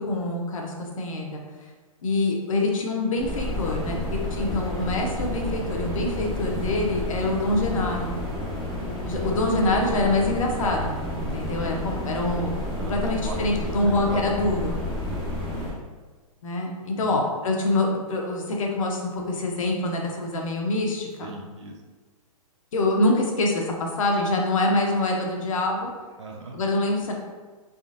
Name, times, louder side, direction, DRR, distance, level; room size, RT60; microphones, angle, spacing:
voice 1, 0.0-1.4 2.0-4.0 4.3-8.2 9.0-12.5 12.8-14.8 16.4-21.3 22.7-25.9 26.5-27.1, left 2 dB, 60° left, 1 dB, 0.8 m, -25 dB
sound 1, 3.2-15.7, left 1 dB, 5° left, 0.4 m, -30 dB
voice 2, 5.4-5.8 9.2-9.3 11.5-11.7 12.8-14.3 15.0-15.4 17.0-17.2 21.2-21.7 26.2-26.5, right 2 dB, 50° right, 1 dB, 0.6 m, -39 dB
3.7 x 3.4 x 2.6 m, 1.3 s
hypercardioid pair, 175°, 19 cm